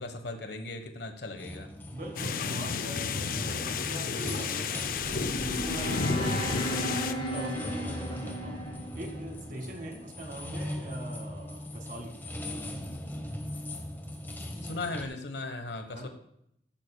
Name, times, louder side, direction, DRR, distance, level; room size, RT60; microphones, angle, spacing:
voice 1, 0.0-1.7 14.6-16.1, left 2 dB, 70° left, 6 dB, 1.2 m, -37 dB
sound 1, 1.4-15.0, left 1 dB, 10° left, 1.1 m, -40 dB
voice 2, 1.9-4.7 5.0-8.6 8.9-12.2 15.9-16.1, right 1 dB, 50° right, 3 dB, 2.1 m, -41 dB
sound 2, 2.2-7.1, left 5 dB, 50° left, 0.6 m, -31 dB
sound 3, 4.7-9.9, equal, 25° left, 2.2 m, -36 dB
13.5 x 13.5 x 2.3 m, 0.73 s
head